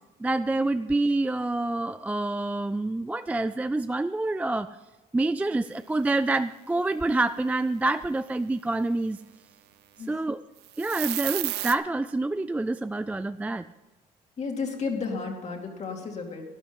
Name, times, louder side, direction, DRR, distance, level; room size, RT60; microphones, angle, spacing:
voice 1, 0.2-4.7 5.1-9.2 10.1-10.4 10.8-13.6, right 2 dB, 10° right, 12 dB, 0.3 m, -27 dB
sound 1, 10.7-11.7, right 15 dB, 80° right, 0.6 m, -30 dB
voice 2, 14.4-16.4, left 4 dB, 40° left, 1 dB, 2.6 m, -32 dB
12.0 x 11.0 x 5.4 m, 1.1 s
cardioid pair, 110°, 17 cm